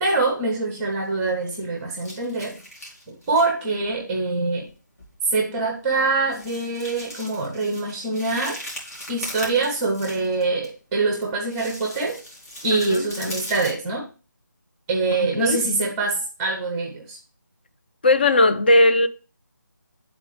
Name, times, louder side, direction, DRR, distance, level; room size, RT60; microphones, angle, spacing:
voice 1, 0.0-2.6 3.1-4.7 5.3-8.6 9.1-12.2 12.6-14.1 14.9-17.2, right 3 dB, 10° right, 0.7 m, -24 dB
sound 1, 0.8-1.6 1.9-3.5 3.8-4.0 4.7-4.8 5.0-5.2 5.6-5.7 6.2-10.7 11.2-13.7, equal, 50° left, 2.5 m, -39 dB
voice 2, 12.7-13.1 15.4-15.6 18.0-19.1, left 2 dB, 30° left, 0.4 m, -17 dB
9.1 x 3.9 x 3.3 m
figure-of-eight pair, 155°, 10 cm